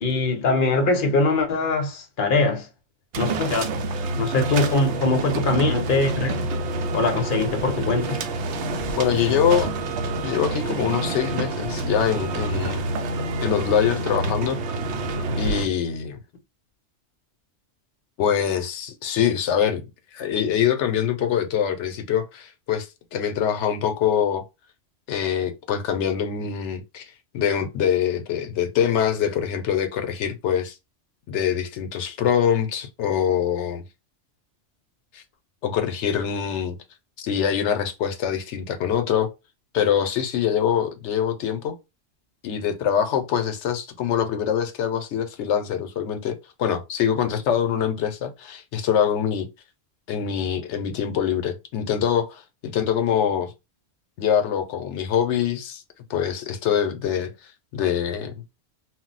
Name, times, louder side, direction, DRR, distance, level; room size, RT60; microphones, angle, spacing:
voice 1, 0.0-2.7 3.2-3.6 4.2-6.5 6.9-8.2, left 3 dB, 55° left, 0.8 m, -22 dB
sound 1, 3.1-15.7, right 2 dB, 75° right, 0.8 m, -27 dB
voice 2, 9.0-9.7 10.2-12.8 13.4-14.6 15.4-16.2 18.2-19.8 20.1-24.4 25.1-30.8 31.3-33.8 35.1-35.2 35.6-36.8 37.2-39.3 39.7-41.7 42.4-49.5 50.1-53.5 54.2-55.8 56.1-57.3 57.7-58.3, left 8 dB, 80° left, 0.9 m, -24 dB
2.3 x 2.1 x 3.8 m
omnidirectional pair, 1.2 m